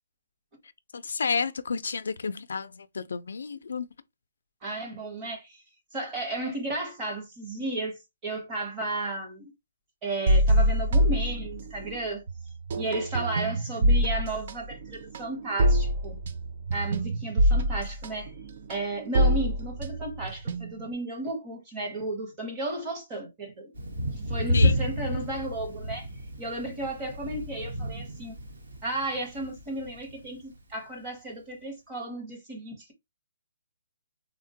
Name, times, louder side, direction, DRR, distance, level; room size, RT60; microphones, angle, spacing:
voice 1, 0.9-3.9 24.5-24.7, left 5 dB, 65° left, 0.3 m, -31 dB
voice 2, 4.6-5.6 5.9-9.5 10.0-12.2 12.8-16.2 16.7-18.3 18.7-23.7 24.1-26.1 26.4-28.4 28.8-32.9, right 2 dB, 15° right, 0.7 m, -34 dB
sound 1, 10.3-12.0 12.3-20.9, equal, 35° right, 0.3 m, -25 dB
Thunder, 23.7-30.5, left 1 dB, 70° right, 1.0 m, -30 dB
3.5 x 2.1 x 2.7 m
hypercardioid pair, 180°, 0 cm